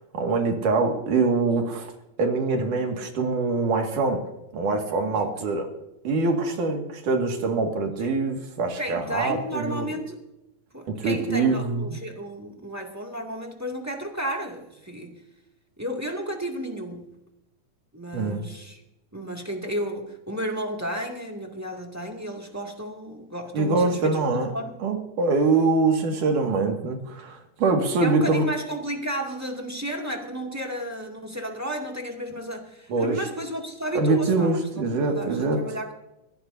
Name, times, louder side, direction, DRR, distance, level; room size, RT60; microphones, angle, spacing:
voice 1, 0.0-1.9 2.2-4.2 4.5-5.7 6.1-9.9 10.9-12.0 18.1-18.5 23.5-24.5 24.8-28.5 32.9-33.2 34.0-35.6, right 3 dB, 75° right, 3 dB, 3.6 m, -24 dB
voice 2, 5.1-5.5 8.0-8.1 8.8-10.2 10.7-15.2 15.8-17.2 17.9-18.8 19.1-24.2 24.5-24.7 28.0-35.9, equal, 5° right, 1 dB, 1.8 m, -33 dB
22.5 x 16.5 x 2.8 m, 0.89 s
omnidirectional pair, 3.7 m